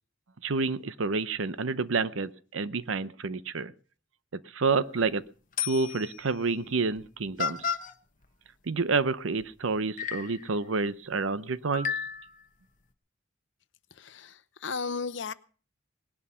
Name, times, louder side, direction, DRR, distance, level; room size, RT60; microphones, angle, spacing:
voice 1, 0.4-3.7 4.3-5.2 5.6-7.7 8.7-11.9, right 4 dB, 80° right, 0.7 m, -29 dB
sound 1, 4.7-5.0 5.6-6.2 7.0-7.1 7.4-7.9 9.4-9.5 10.0-10.4 11.7-12.4, left 7 dB, 40° left, 1.1 m, -32 dB
voice 2, 13.9-15.3, left 4 dB, 65° left, 0.8 m, -35 dB
19.0 x 11.0 x 5.6 m
head